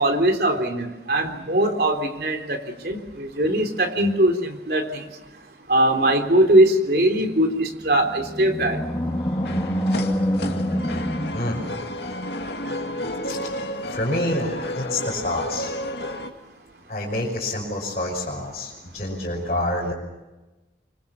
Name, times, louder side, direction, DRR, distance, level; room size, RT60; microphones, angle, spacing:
voice 1, 0.0-5.1 5.7-8.8, right 1 dB, 60° right, 5 dB, 3.6 m, -21 dB
Animal, 7.7-12.3, equal, 15° left, 2.4 m, -26 dB
sound 1, 8.9-16.3, left 1 dB, 75° left, 2.3 m, -32 dB
voice 2, 11.3-11.7 13.2-13.4 13.9-15.7 16.9-19.9, left 1 dB, 40° left, -5 dB, 6.1 m, -27 dB
25.5 x 25.5 x 7.2 m, 1.1 s
head